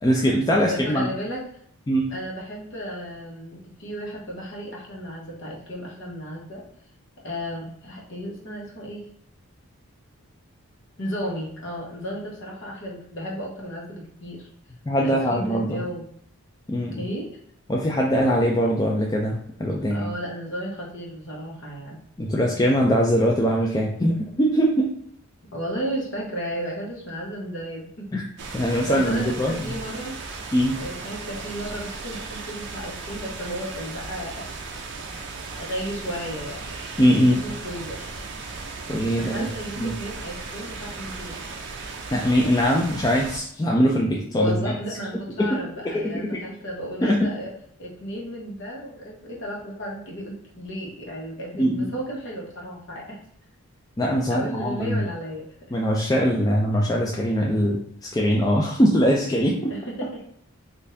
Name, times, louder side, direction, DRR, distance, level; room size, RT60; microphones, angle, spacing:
voice 1, 0.0-1.1 1.9-2.1 14.9-15.8 16.7-17.1 17.7-20.1 22.2-24.9 28.1-28.2 28.5-29.5 30.5-30.8 37.0-37.4 38.9-39.5 39.8-40.0 42.1-44.8 45.4-45.5 45.8-46.4 47.0-47.3 51.6-51.9 54.0-55.0 55.7-57.8 58.1-59.7, equal, 15° left, -2 dB, 0.3 m, -22 dB
voice 2, 0.6-1.4 2.1-6.6 7.2-9.0 11.0-14.4 15.0-16.0 17.0-17.3 19.9-22.0 25.5-28.1 28.8-30.2 30.8-34.5 35.6-36.7 37.3-38.1 39.1-41.4 42.8-43.0 44.3-47.5 47.8-53.2 54.3-55.4 59.7-60.2, equal, 55° left, -3 dB, 1.1 m, -33 dB
sound 1, 28.4-43.4, right 4 dB, 50° right, 0.4 m, -36 dB
4.0 x 2.6 x 2.6 m, 0.65 s
head